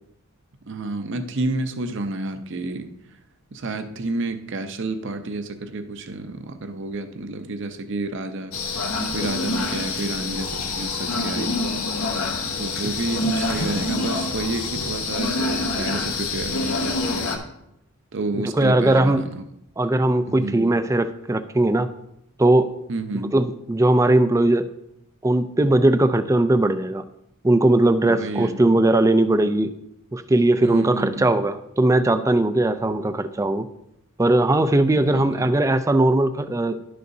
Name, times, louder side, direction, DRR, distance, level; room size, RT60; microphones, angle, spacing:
voice 1, 0.6-2.9 3.5-8.5 9.1-11.6 12.4-17.5 18.1-19.4 20.2-20.7 22.9-23.4 28.1-28.6 30.6-31.4 34.9-35.5, right 2 dB, 55° right, 8 dB, 0.6 m, -30 dB
sound 1, 8.5-17.4, left 3 dB, 70° left, 1.1 m, -26 dB
voice 2, 18.4-19.2 19.8-21.9 22.4-22.8 23.3-24.7 25.2-27.0 27.4-29.7 30.1-33.7 34.2-36.8, right 2 dB, 15° right, 11 dB, 0.3 m, -19 dB
11.5 x 6.7 x 2.7 m, 0.81 s
head